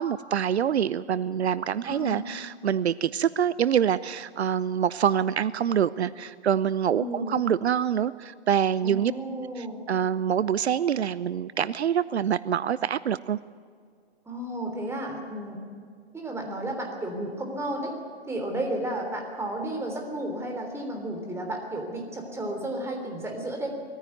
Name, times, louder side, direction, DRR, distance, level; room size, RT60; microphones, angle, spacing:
voice 1, 0.0-9.1 9.6-13.4, right 9 dB, 75° right, 18 dB, 0.6 m, -25 dB
voice 2, 1.8-2.2 6.9-7.4 8.8-9.8 14.3-15.6 16.1-17.9 18.3-23.7, right 1 dB, 10° right, 2 dB, 3.5 m, -33 dB
20.5 x 15.0 x 9.3 m, 2.1 s
figure-of-eight pair, 120°, 33 cm